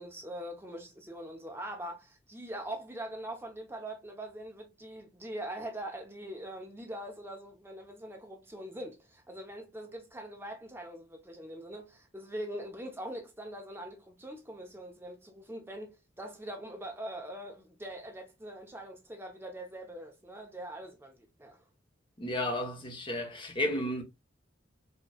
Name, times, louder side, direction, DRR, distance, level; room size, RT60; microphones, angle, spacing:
voice 1, 0.0-21.7, right 1 dB, 10° right, 0.9 m, -42 dB
voice 2, 22.2-24.0, left 1 dB, 25° left, 1.0 m, -32 dB
4.3 x 3.1 x 2.3 m
head